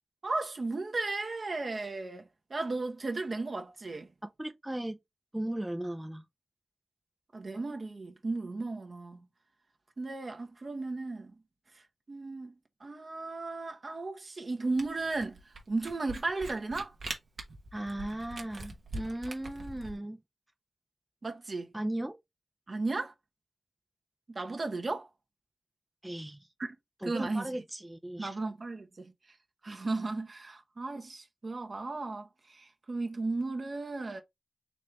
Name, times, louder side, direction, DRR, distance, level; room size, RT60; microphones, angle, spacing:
voice 1, 0.2-4.1 7.3-9.3 10.0-11.3 11.7-12.5 12.8-16.9 21.2-21.7 22.7-23.1 24.3-25.1 26.6-26.7 27.0-27.5 28.2-29.4 29.6-34.2, right 3 dB, 55° right, 1.1 m, -35 dB
voice 2, 4.2-5.0 5.3-6.2 17.7-20.2 21.7-22.2 26.0-26.5 27.0-28.3, right 1 dB, 15° right, 0.6 m, -37 dB
Camera, 14.8-19.9, right 2 dB, 75° right, 1.2 m, -42 dB
4.2 x 3.3 x 3.2 m
cardioid pair, 55°, 0 cm